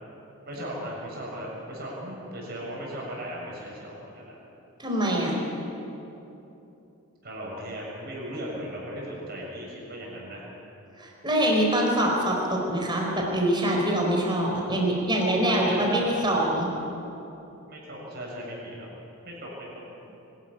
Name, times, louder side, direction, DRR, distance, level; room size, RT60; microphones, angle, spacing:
voice 1, 0.5-4.3 7.2-10.5 15.3-16.2 17.7-18.9 19.2-19.7, equal, 45° right, -3 dB, 7.1 m, -37 dB
voice 2, 4.8-5.3 11.0-16.7, right 1 dB, 20° right, -1 dB, 4.3 m, -24 dB
24.0 x 13.5 x 9.9 m, 2.9 s
head